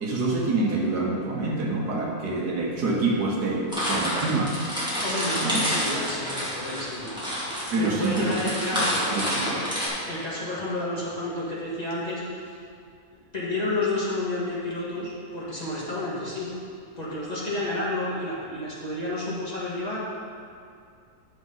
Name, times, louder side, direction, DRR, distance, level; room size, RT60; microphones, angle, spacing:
voice 1, 0.0-4.6 5.4-5.6 7.7-8.4 8.7-9.6, right 2 dB, 80° right, -2 dB, 1.7 m, -26 dB
sound 1, 3.7-9.9, equal, 5° right, 2.0 m, -29 dB
voice 2, 5.0-7.1 7.8-9.2 10.1-12.6 13.3-16.5 17.0-20.0, left 2 dB, 25° left, -8 dB, 1.7 m, -30 dB
10.0 x 6.6 x 3.9 m, 2.3 s
omnidirectional pair, 1.7 m